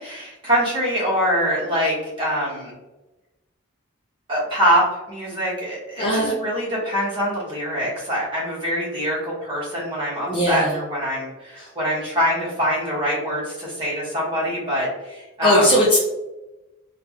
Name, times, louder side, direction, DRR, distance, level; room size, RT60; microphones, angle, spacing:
voice 1, 0.0-2.7 4.3-15.7, equal, 25° right, -7 dB, 1.3 m, -24 dB
voice 2, 6.0-6.3 10.3-10.8 11.6-11.7 15.4-16.0, equal, 25° left, -3 dB, 0.4 m, -18 dB
3.5 x 2.4 x 2.9 m, 1.1 s
head